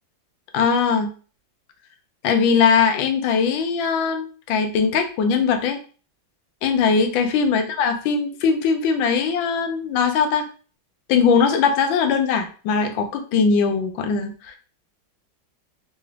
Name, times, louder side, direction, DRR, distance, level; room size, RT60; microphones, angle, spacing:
voice 1, 0.5-1.1 2.2-5.8 6.6-10.4 11.1-14.6, left 5 dB, 85° left, 6 dB, 1.4 m, -20 dB
3.9 x 2.3 x 3.2 m, 0.39 s
omnidirectional pair, 2.1 m